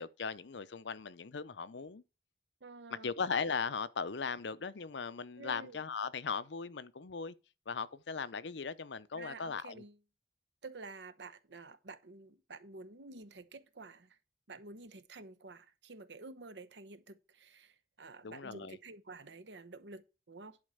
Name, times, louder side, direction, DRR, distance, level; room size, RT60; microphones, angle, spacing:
voice 1, 0.0-2.0 3.0-7.3 7.7-9.8 18.2-18.8, left 5 dB, 75° left, 0.6 m, -38 dB
voice 2, 2.6-3.1 5.4-5.8 9.1-10.0 10.6-14.2 14.5-20.6, right 3 dB, 75° right, 1.0 m, -50 dB
11.0 x 4.4 x 6.5 m
head